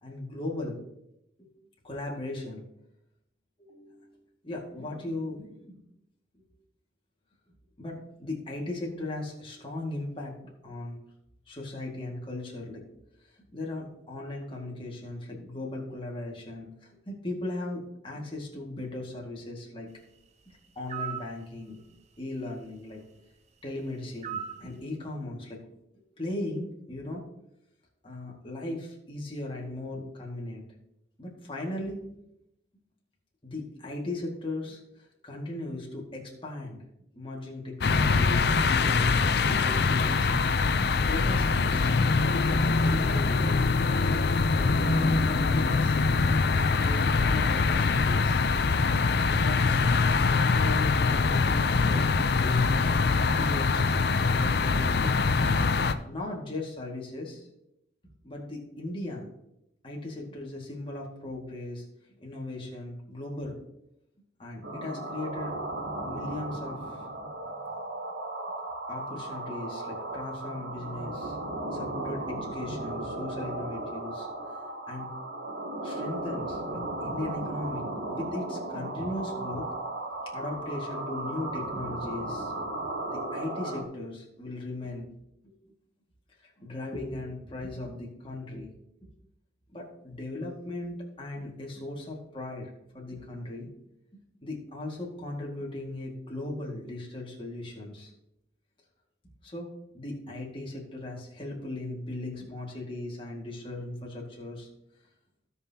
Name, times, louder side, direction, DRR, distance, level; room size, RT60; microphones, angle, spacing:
voice 1, 0.0-0.8 1.4-1.5 1.8-2.6 3.6-4.2 4.4-5.8 7.8-10.4 10.6-11.0 11.5-12.8 13.5-19.9 20.5-21.8 22.2-23.0 23.6-25.6 26.2-27.2 28.0-30.6 31.2-32.0 33.4-36.8 37.2-40.5 41.0-41.9 42.5-43.5 44.5-46.0 46.5-48.4 49.2-49.8 50.2-53.8 54.4-55.1 56.0-57.5 58.2-59.3 59.8-61.9 62.2-63.6 64.4-65.6 66.0-67.0 68.9-71.4 71.7-74.3 74.9-75.1 75.8-77.8 78.1-79.7 80.3-82.5 83.1-85.1 85.4-85.5 86.4-88.7 89.7-92.7 92.9-93.7 94.4-98.1 99.4-99.7 99.9-104.7, left 2 dB, 25° left, -2 dB, 2.0 m, -37 dB
sound 1, 20.9-21.3 24.2-24.6, right 8 dB, 35° right, 0.6 m, -35 dB
sound 2, 37.8-55.9, left 4 dB, 55° left, 0.5 m, -24 dB
sound 3, 64.6-83.8, right 2 dB, 70° right, 1.1 m, -35 dB
16.5 x 5.6 x 2.9 m, 0.83 s
head